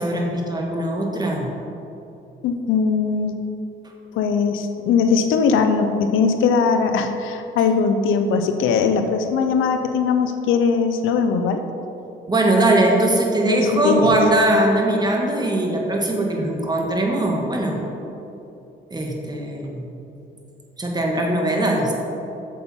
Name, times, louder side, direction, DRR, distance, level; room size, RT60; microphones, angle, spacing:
voice 1, 0.0-1.5 12.3-17.8 18.9-19.8 20.8-21.9, right 1 dB, 20° right, 0 dB, 1.6 m, -20 dB
voice 2, 2.4-3.4 4.1-11.6 13.4-14.2 14.5-14.6, left 5 dB, 85° left, 7 dB, 0.7 m, -20 dB
8.4 x 7.0 x 4.4 m, 2.8 s
cardioid pair, 90°, 20 cm